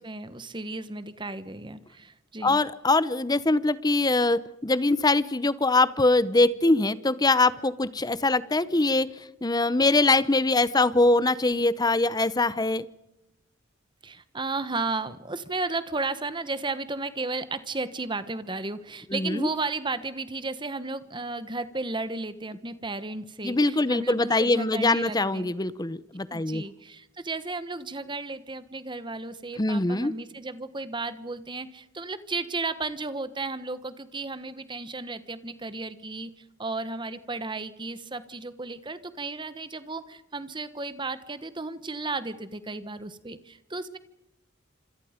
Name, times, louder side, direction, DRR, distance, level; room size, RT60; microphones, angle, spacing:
voice 1, 0.0-2.6 14.0-25.5 26.3-36.3 36.6-44.0, right 3 dB, 25° right, 13 dB, 1.2 m, -34 dB
voice 2, 2.4-9.1 9.4-12.8 19.1-19.5 23.4-26.6 29.6-30.1, left 2 dB, 20° left, 17 dB, 0.7 m, -23 dB
27.5 x 26.5 x 5.1 m, 0.92 s
head